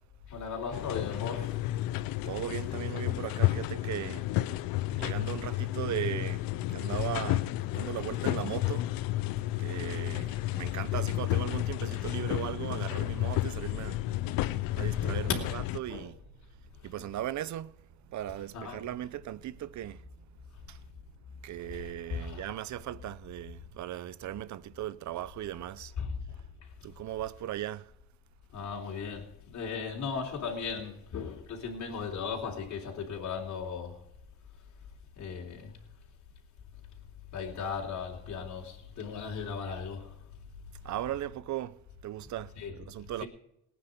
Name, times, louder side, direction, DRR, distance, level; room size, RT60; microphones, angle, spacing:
voice 1, 0.3-1.6 11.8-12.5 14.8-15.4 15.9-16.1 16.8-16.9 18.5-18.9 21.6-22.5 26.0-26.7 28.5-34.0 35.2-35.8 37.3-40.2 42.6-42.7 43.2-43.3, left 6 dB, 55° left, 3.5 m, -37 dB
sound 1, 0.7-15.8, left 16 dB, 80° left, 0.8 m, -31 dB
voice 2, 2.2-4.3 4.9-8.9 9.6-14.0 14.7-16.1 16.8-17.7 18.1-20.1 20.7-20.8 21.4-25.9 26.8-27.9 40.8-43.2, right 13 dB, 55° right, 0.8 m, -37 dB
19.0 x 9.5 x 5.2 m
cardioid pair, 100°, 35 cm